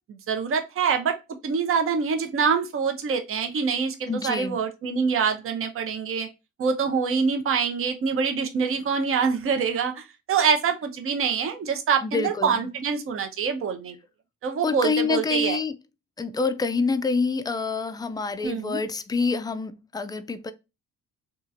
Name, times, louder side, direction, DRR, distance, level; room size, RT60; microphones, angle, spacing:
voice 1, 0.1-1.2 1.4-3.9 4.2-6.3 6.6-13.9 14.4-15.6 18.4-18.8, right 6 dB, 45° right, 0.7 m, -25 dB
voice 2, 4.1-4.6 12.0-12.7 14.6-15.7 16.2-20.5, left 4 dB, 15° left, 0.3 m, -27 dB
2.9 x 2.4 x 2.5 m
cardioid pair, 90°, 30 cm